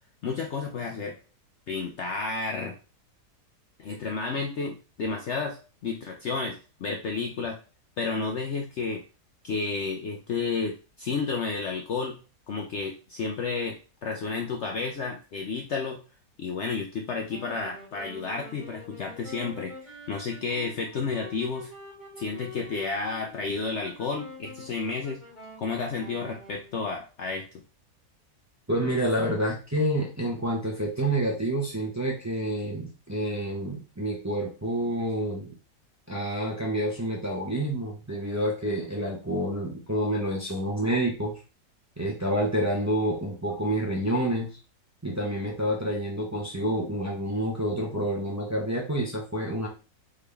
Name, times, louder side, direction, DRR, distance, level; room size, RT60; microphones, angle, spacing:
voice 1, 0.2-1.2 1.7-2.8 3.8-7.6 8.0-9.0 9.4-12.2 12.5-16.0 16.4-21.7 22.2-25.2 25.6-27.4, left 4 dB, 60° left, 2 dB, 0.7 m, -31 dB
Wind instrument woodwind instrument, 17.3-26.9, left 1 dB, 30° left, 2.1 m, -46 dB
voice 2, 28.7-35.5 36.1-41.3 42.0-44.5 45.0-49.7, right 1 dB, 15° right, -2 dB, 0.7 m, -28 dB
3.8 x 3.7 x 3.3 m, 0.34 s
omnidirectional pair, 1.7 m